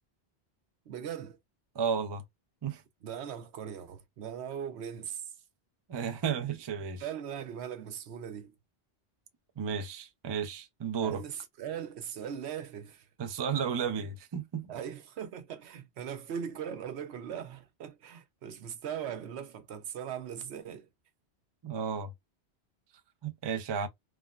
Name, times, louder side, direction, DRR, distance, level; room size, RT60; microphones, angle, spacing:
voice 1, 0.9-1.4 3.0-5.3 7.0-8.5 11.0-13.1 14.7-20.9, right 8 dB, 75° right, 0.9 m, -39 dB
voice 2, 1.7-2.2 2.6-2.8 5.9-7.0 9.6-11.2 13.2-14.7 21.6-22.1 23.2-23.9, right 7 dB, 40° right, 0.4 m, -33 dB
3.4 x 2.1 x 2.3 m
omnidirectional pair, 1.1 m